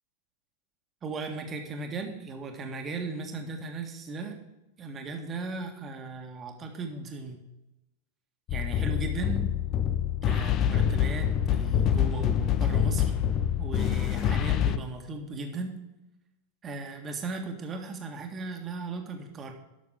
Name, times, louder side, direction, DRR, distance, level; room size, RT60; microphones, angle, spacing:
voice 1, 1.0-4.4 4.8-7.5 8.5-9.5 10.2-13.1 13.6-15.8 16.6-19.5, right 3 dB, 25° right, 4 dB, 1.7 m, -37 dB
sound 1, 8.5-14.8, left 9 dB, 35° left, 0.6 m, -26 dB
12.5 x 6.7 x 4.9 m, 0.99 s
figure-of-eight pair, 90°, 0 cm